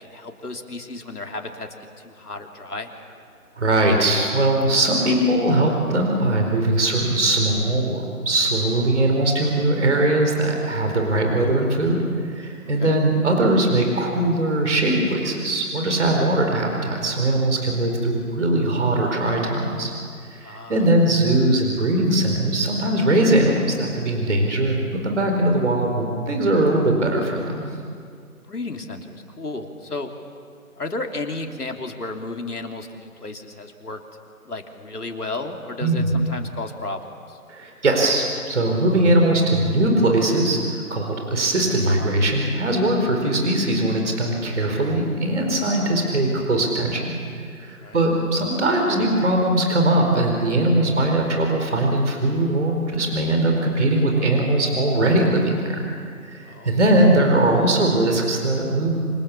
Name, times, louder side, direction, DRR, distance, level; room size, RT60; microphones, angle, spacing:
voice 1, 0.0-1.7 2.0-2.9 12.8-13.0 20.4-20.9 28.5-30.1 30.8-34.0 34.4-37.4 47.8-48.0 56.5-56.8, left 2 dB, 85° left, 3 dB, 3.3 m, -33 dB
voice 2, 3.6-19.9 20.3-27.6 35.8-36.1 37.5-47.1 47.6-55.8 56.2-59.0, right 1 dB, 50° right, 2 dB, 4.6 m, -20 dB
28.5 x 25.0 x 7.2 m, 2.2 s
figure-of-eight pair, 165°, 45 cm